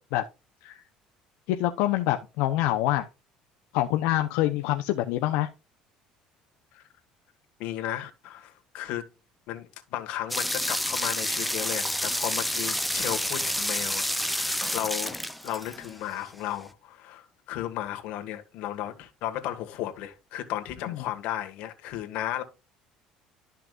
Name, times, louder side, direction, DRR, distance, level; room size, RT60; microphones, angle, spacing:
voice 1, 1.5-3.1 3.7-5.5 20.9-21.0, left 14 dB, 85° left, 0.7 m, -26 dB
voice 2, 7.6-9.1 9.5-22.4, left 12 dB, 70° left, 1.7 m, -34 dB
sound 1, 10.3-16.2, equal, ahead, 0.6 m, -29 dB
12.5 x 5.8 x 2.5 m
cardioid pair, 145°, 2 cm